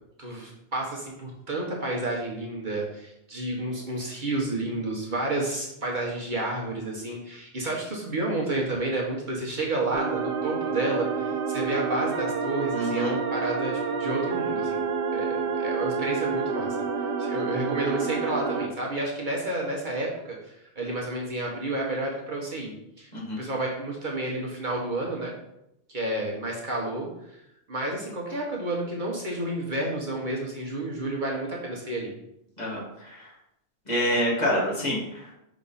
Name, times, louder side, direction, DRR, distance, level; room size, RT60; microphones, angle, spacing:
voice 1, 0.2-14.9 15.1-23.1 23.4-25.3 25.9-27.1 27.7-32.1, right 2 dB, 45° right, -3 dB, 1.2 m, -30 dB
sound 1, 9.9-18.7, right 5 dB, 60° right, 0.8 m, -29 dB
voice 2, 12.7-13.1 23.1-23.4 32.6-33.3 33.9-35.3, equal, 40° left, -5 dB, 1.8 m, -27 dB
5.1 x 3.7 x 5.5 m, 0.83 s
omnidirectional pair, 1.2 m